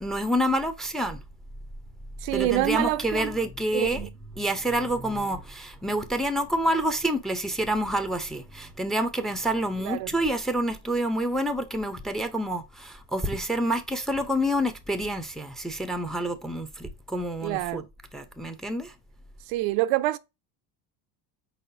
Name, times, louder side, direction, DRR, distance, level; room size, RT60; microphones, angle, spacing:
voice 1, 0.0-1.2 2.3-4.1 4.4-17.8 18.1-18.9, right 1 dB, ahead, 0.5 m, -28 dB
voice 2, 2.2-3.4 3.7-4.1 9.8-10.1 17.4-17.8 19.5-20.2, right 17 dB, 65° right, 0.5 m, -26 dB
4.7 x 4.1 x 2.6 m
supercardioid pair, 105°, 49 cm